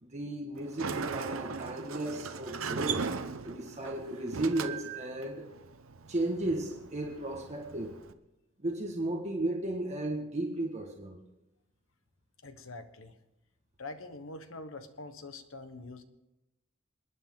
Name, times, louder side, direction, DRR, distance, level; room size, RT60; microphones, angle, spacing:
voice 1, 0.0-3.1 3.4-5.5 6.1-8.0 8.6-11.2, right 1 dB, 35° right, 0 dB, 1.6 m, -34 dB
Sliding door, 0.6-8.1, right 5 dB, 75° right, 0.8 m, -39 dB
voice 2, 12.4-13.1 13.8-16.0, left 2 dB, 70° left, 9 dB, 1.2 m, -44 dB
28.0 x 10.0 x 3.8 m, 0.94 s
head